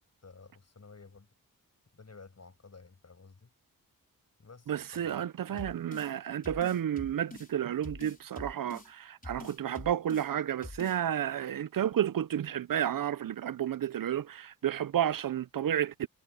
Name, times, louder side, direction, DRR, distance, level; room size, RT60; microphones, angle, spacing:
voice 1, 0.2-1.3 1.9-3.5 4.4-5.7, left 4 dB, 45° left, 7.0 m, -53 dB
voice 2, 4.7-16.1, right 10 dB, 65° right, 0.6 m, -31 dB
sound 1, 5.6-6.1 6.4-7.5 7.8-8.9 9.2-10.3 10.6-11.0, left 2 dB, 25° left, 4.6 m, -45 dB
cardioid pair, 55°, 36 cm